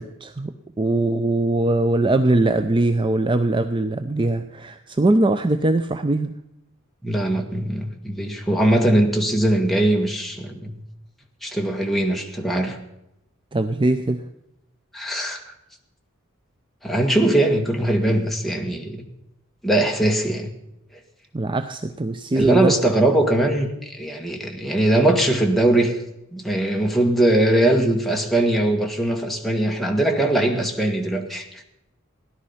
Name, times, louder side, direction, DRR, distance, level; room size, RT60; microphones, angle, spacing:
voice 1, 0.0-6.3 13.5-14.2 21.3-22.7, right 2 dB, 25° right, 9 dB, 0.5 m, -21 dB
voice 2, 7.0-10.7 11.4-12.8 14.9-15.5 16.8-19.0 19.6-20.5 22.3-26.0 26.3-31.4, right 1 dB, ahead, 1 dB, 1.7 m, -21 dB
16.5 x 11.0 x 5.7 m, 0.86 s
head